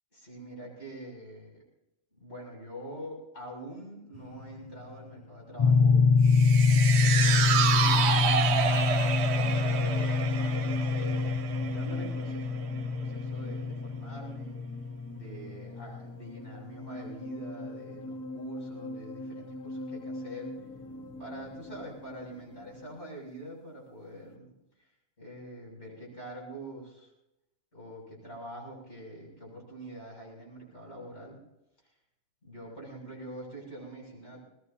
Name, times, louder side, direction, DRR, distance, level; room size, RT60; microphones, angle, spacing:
voice 1, 0.1-1.6 2.1-8.4 9.1-14.5 15.1-20.5 21.2-24.5 25.2-27.1 27.7-31.4 32.4-34.4, right 1 dB, 65° left, -3 dB, 7.6 m, -45 dB
sound 1, 4.1-23.0, left 1 dB, 15° left, 0.8 m, -42 dB
sound 2, 5.6-15.7, left 4 dB, 35° left, 0.6 m, -25 dB
sound 3, 6.3-12.8 13.1-13.2, right 8 dB, 65° right, 1.0 m, -29 dB
22.0 x 19.5 x 2.8 m, 0.88 s
omnidirectional pair, 1.2 m